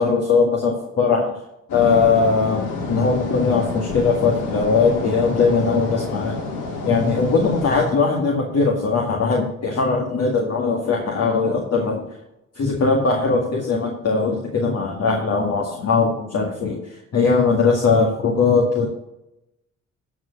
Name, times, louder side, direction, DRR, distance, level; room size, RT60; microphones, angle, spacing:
voice 1, 0.0-1.3 1.7-6.4 6.8-12.1 12.6-18.9, left 4 dB, 55° left, 0 dB, 2.0 m, -20 dB
sound 1, 1.7-7.9, left 3 dB, 85° left, 2.7 m, -29 dB
14.5 x 4.8 x 6.6 m, 0.89 s
cardioid pair, 90°, 30 cm